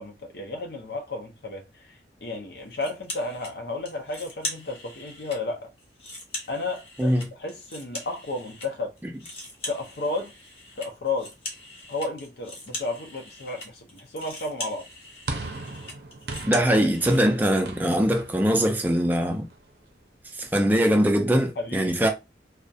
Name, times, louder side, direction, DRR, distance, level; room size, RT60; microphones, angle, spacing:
voice 1, 0.0-5.7 6.5-8.9 9.6-10.3 10.8-11.3 11.9-14.9 21.6-22.1, left 3 dB, 65° left, 0.5 m, -33 dB
sound 1, 2.8-3.5 3.8-5.4 5.8-8.7 9.0-17.3, left 1 dB, 30° left, 0.7 m, -40 dB
sound 2, 15.3-19.7, right 3 dB, 60° right, 0.5 m, -38 dB
voice 2, 16.4-19.5 20.4-22.1, equal, 10° right, 0.3 m, -22 dB
2.3 x 2.0 x 2.6 m
head